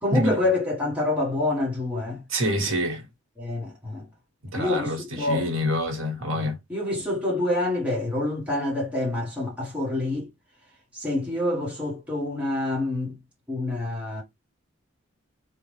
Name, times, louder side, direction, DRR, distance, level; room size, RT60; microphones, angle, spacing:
voice 1, 0.0-2.2 3.4-4.1 4.5-5.5 6.3-10.3 10.9-13.2 13.5-14.2, left 2 dB, 5° right, 1.3 m, -27 dB
voice 2, 2.3-3.0 4.5-6.6, equal, 75° right, 1.4 m, -26 dB
3.6 x 2.4 x 3.1 m
head